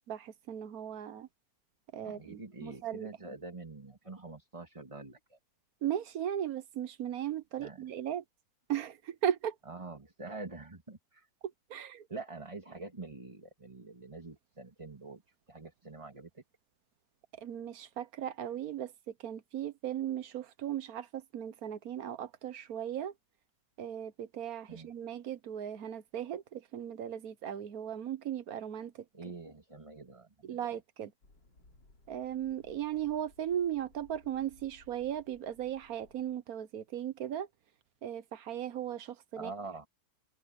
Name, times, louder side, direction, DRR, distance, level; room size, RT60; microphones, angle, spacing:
voice 1, 0.1-1.3 1.9-3.1 5.8-8.2 8.7-9.6 11.7-12.1 17.4-18.9 19.2-23.1 23.8-29.0 30.4-31.1 32.1-37.5 38.0-39.5, right 10 dB, 60° right, 1.2 m, -37 dB
voice 2, 2.0-5.4 7.6-7.8 9.7-11.3 12.1-15.2 15.5-16.4 24.7-24.9 29.1-30.6 39.4-39.9, right 3 dB, 20° right, 2.1 m, -45 dB
sound 1, 31.2-36.4, left 2 dB, 75° left, 5.1 m, -63 dB
omnidirectional pair, 1.9 m